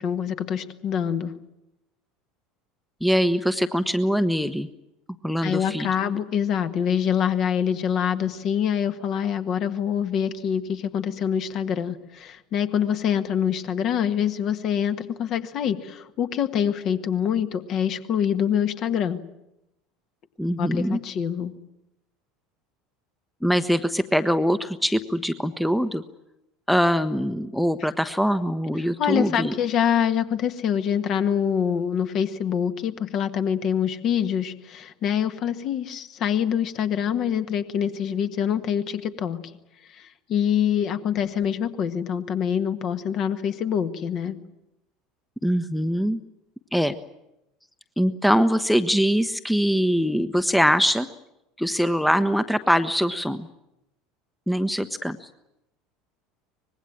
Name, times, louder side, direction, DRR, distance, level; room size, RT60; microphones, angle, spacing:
voice 1, 0.0-1.3 5.4-19.2 20.6-21.5 29.0-39.4 39.9-44.4, left 8 dB, 45° left, 9 dB, 1.7 m, -25 dB
voice 2, 3.0-4.7 5.2-5.9 20.4-21.0 23.4-26.0 26.7-29.6 45.4-46.2 46.7-47.0 48.0-51.1 51.6-53.5 54.5-55.3, equal, ahead, 12 dB, 1.0 m, -23 dB
25.0 x 20.5 x 8.8 m, 0.89 s
figure-of-eight pair, 70°, 0 cm